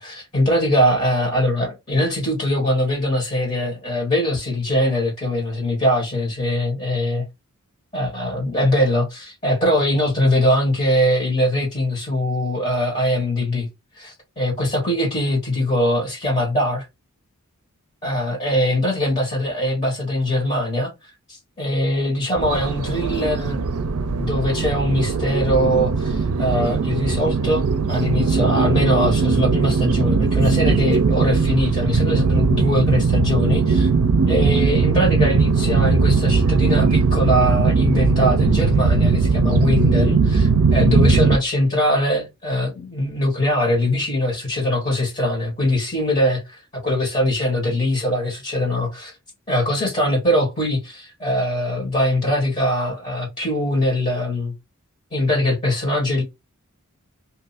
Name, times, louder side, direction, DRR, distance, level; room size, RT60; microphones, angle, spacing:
voice 1, 0.0-7.2 7.9-13.7 13.9-16.8 18.0-20.9 21.3-23.6 24.1-33.9 34.3-49.1 49.5-54.5 55.1-56.2, left 1 dB, 30° left, 1.5 m, -22 dB
sound 1, 22.4-41.4, right 4 dB, 75° right, 0.5 m, -19 dB
2.8 x 2.4 x 4.1 m
head